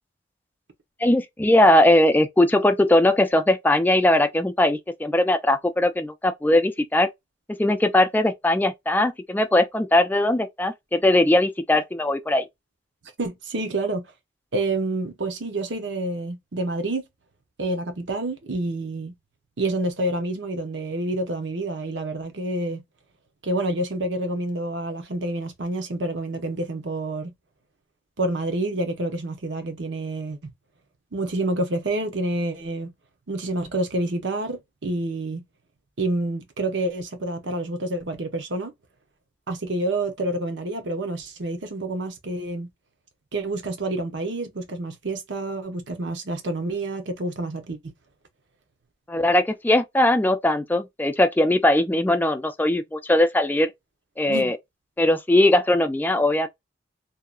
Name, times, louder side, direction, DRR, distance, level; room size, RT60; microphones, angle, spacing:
voice 1, 1.0-7.1 7.6-12.5 49.1-53.7 54.2-54.6 55.0-56.5, left 1 dB, 10° left, 0.3 m, -20 dB
voice 2, 13.2-14.1 14.5-17.0 17.6-19.2 19.6-22.8 23.4-27.3 28.2-30.4 31.1-32.9 33.3-35.5 36.0-38.7 39.5-42.7 43.3-47.9 54.3-54.5, right 2 dB, 80° right, 0.8 m, -28 dB
2.8 x 2.2 x 2.4 m
head